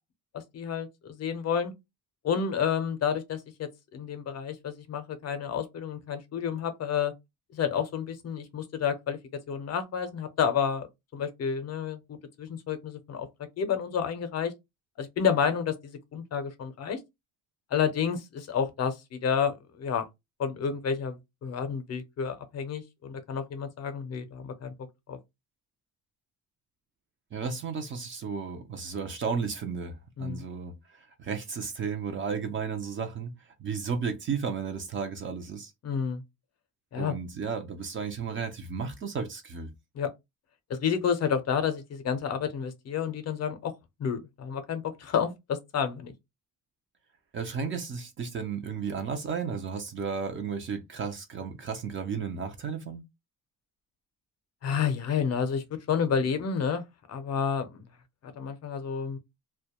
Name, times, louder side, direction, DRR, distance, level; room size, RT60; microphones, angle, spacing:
voice 1, 0.3-1.7 2.2-7.1 7.5-9.2 9.5-10.9 11.1-13.3 13.6-14.5 15.0-17.0 17.7-20.1 20.4-24.7 25.1-25.2 30.2-30.4 35.8-36.2 36.9-37.2 39.9-40.1 40.7-43.7 44.0-46.1 54.6-57.8 58.2-59.2, left 7 dB, 50° left, 0.5 m, -30 dB
voice 2, 27.3-29.9 30.2-33.3 33.6-35.7 36.9-39.7 47.3-53.0, right 6 dB, 35° right, 0.4 m, -33 dB
2.2 x 2.1 x 2.8 m
cardioid pair, 160°, 35 cm